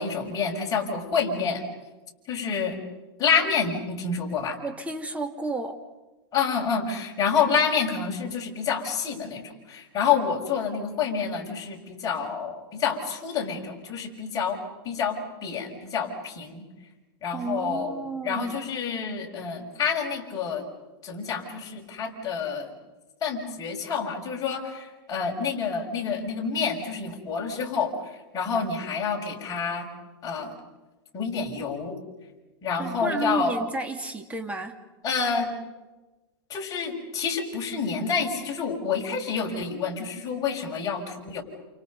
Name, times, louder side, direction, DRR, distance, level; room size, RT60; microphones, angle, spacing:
voice 1, 0.0-1.6 2.3-2.8 3.2-4.6 6.3-14.6 14.8-16.6 17.2-20.6 21.0-22.7 23.2-27.9 28.3-29.9 30.2-30.5 31.1-32.0 32.6-33.5 35.0-35.5 36.5-41.4, left 6 dB, 25° left, -1 dB, 6.8 m, -28 dB
voice 2, 4.6-5.8 17.3-18.6 32.8-34.8, right 3 dB, 10° right, 4 dB, 2.6 m, -32 dB
30.0 x 29.5 x 5.5 m, 1.1 s
hypercardioid pair, 130°, 14 cm